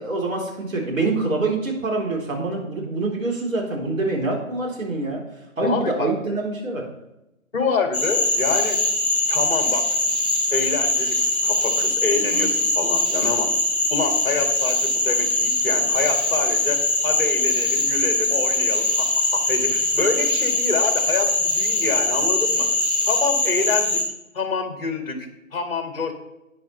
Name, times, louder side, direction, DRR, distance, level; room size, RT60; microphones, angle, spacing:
voice 1, 0.0-5.2 5.6-6.9, right 3 dB, 70° right, -1 dB, 3.9 m, -25 dB
voice 2, 5.6-6.1 7.5-8.8 9.3-9.8 10.5-11.2 11.4-13.5 13.9-22.7 23.1-24.0 24.3-26.1, left 4 dB, 40° left, 5 dB, 2.2 m, -27 dB
Cricket / Frog, 7.9-24.0, left 2 dB, ahead, 1.3 m, -22 dB
12.5 x 9.1 x 3.2 m, 0.91 s
figure-of-eight pair, 155°, 42 cm